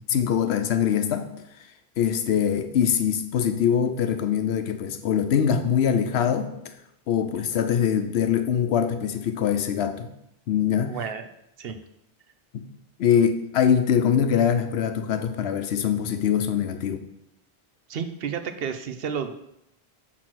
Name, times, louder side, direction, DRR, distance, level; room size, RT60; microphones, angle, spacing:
voice 1, 0.1-1.3 2.0-6.5 7.1-10.1 10.5-11.0 12.5-12.7 13.0-17.0, left 8 dB, 85° left, 8 dB, 0.9 m, -23 dB
voice 2, 10.8-11.3 11.6-11.8 17.9-19.3, right 7 dB, 70° right, 8 dB, 0.8 m, -31 dB
6.1 x 4.0 x 6.0 m, 0.80 s
omnidirectional pair, 1.1 m